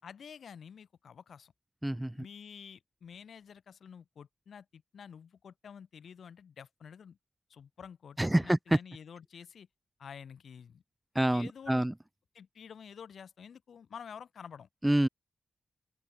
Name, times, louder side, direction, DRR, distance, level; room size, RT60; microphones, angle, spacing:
voice 1, 0.0-1.5 2.2-7.2 7.5-9.7 10.0-10.8 11.3-11.9 12.3-14.7, left 7 dB, 80° left, 3.9 m, -49 dB
voice 2, 1.8-2.1 8.2-8.8 11.2-11.9 14.8-15.1, right 1 dB, 10° right, 0.4 m, -27 dB
open air
cardioid pair, 65°, 0 cm